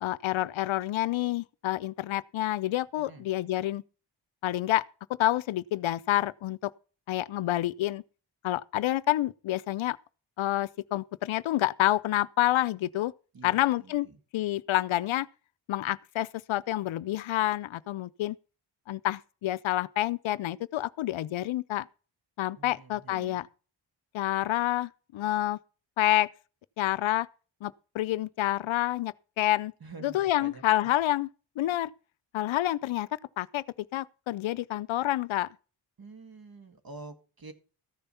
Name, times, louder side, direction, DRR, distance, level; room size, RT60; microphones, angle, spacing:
voice 1, 0.0-3.8 4.4-4.8 5.2-6.7 7.1-8.0 8.4-10.0 10.4-13.1 13.4-14.1 14.3-15.3 15.7-18.4 18.9-21.9 22.4-23.5 24.1-25.6 26.0-26.3 26.8-27.3 27.6-29.7 30.0-31.3 31.6-31.9 32.3-33.1 33.4-33.6 33.9-35.5, left 14 dB, 75° left, 0.5 m, -28 dB
voice 2, 13.3-14.2 22.6-23.4 29.8-30.9 36.0-37.5, right 3 dB, 45° right, 2.0 m, -47 dB
14.0 x 6.9 x 5.6 m
cardioid pair, 65°, 47 cm